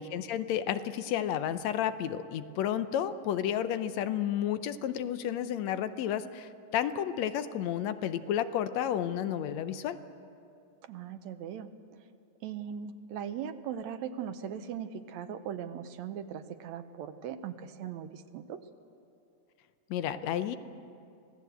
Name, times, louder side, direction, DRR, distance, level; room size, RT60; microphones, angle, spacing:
voice 1, 0.0-10.0 19.9-20.6, left 10 dB, 75° left, 11 dB, 1.9 m, -31 dB
voice 2, 10.8-11.7 12.4-18.6, right 8 dB, 75° right, 9 dB, 2.0 m, -39 dB
26.0 x 17.0 x 8.0 m, 2.5 s
omnidirectional pair, 3.3 m